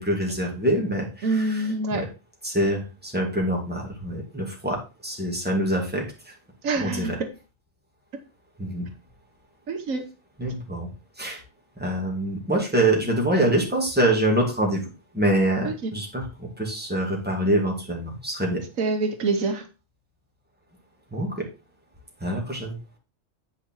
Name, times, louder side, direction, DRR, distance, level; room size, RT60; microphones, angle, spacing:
voice 1, 0.0-1.6 1.9-2.1 2.4-6.3 6.8-7.2 8.6-8.9 10.4-10.9 11.2-11.4 11.8-14.9 15.1-18.6 21.1-21.5 22.2-22.8, right 1 dB, 5° right, 2.3 m, -25 dB
voice 2, 1.2-2.1 6.6-7.3 9.7-10.0 15.6-15.9 18.8-19.6, right 3 dB, 80° right, 1.5 m, -26 dB
8.6 x 5.0 x 4.5 m
omnidirectional pair, 1.4 m